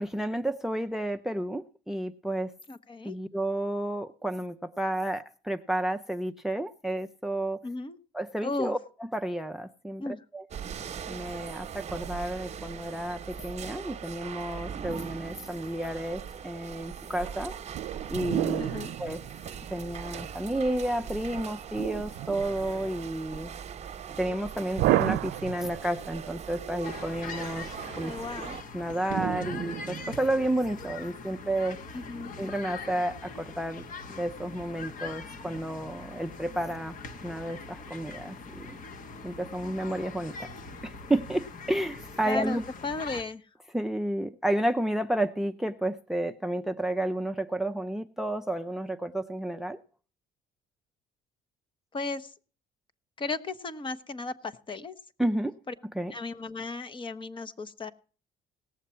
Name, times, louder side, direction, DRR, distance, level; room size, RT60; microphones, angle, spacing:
voice 1, 0.0-2.5 3.0-7.6 8.1-10.4 11.1-17.5 18.1-18.7 19.0-19.2 19.7-23.5 24.2-28.1 28.7-31.8 32.4-33.8 34.1-36.9 37.2-38.8 39.2-40.5 40.8-42.7 43.7-49.8 55.2-55.6 56.0-56.1, right 1 dB, ahead, 12 dB, 0.5 m, -31 dB
voice 2, 2.7-3.2 7.6-8.0 8.4-8.7 10.0-10.2 18.6-19.0 28.0-28.6 31.9-32.3 42.2-42.6 42.8-43.4 51.9-52.3 53.2-54.9 55.7-55.8 56.1-57.9, left 3 dB, 30° left, 12 dB, 1.0 m, -35 dB
sound 1, 10.5-28.6, right 8 dB, 40° right, 1.1 m, -40 dB
sound 2, 17.7-20.0 21.7-23.0 24.8-26.1 29.1-30.5, right 14 dB, 80° right, 0.5 m, -31 dB
sound 3, 26.8-43.2, left 4 dB, 50° left, 1.3 m, -42 dB
18.0 x 7.4 x 4.3 m, 0.39 s
cardioid pair, 110°, 17 cm